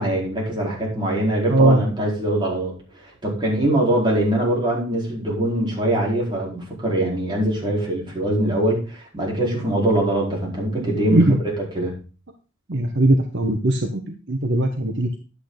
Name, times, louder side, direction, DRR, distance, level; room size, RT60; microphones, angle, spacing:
voice 1, 0.0-2.7 3.0-11.9, right 1 dB, 25° right, -4 dB, 4.8 m, -23 dB
voice 2, 1.5-1.8 11.1-11.4 12.7-14.0 14.3-15.2, right 1 dB, 60° right, 5 dB, 1.2 m, -19 dB
11.0 x 8.3 x 4.0 m, 0.35 s
head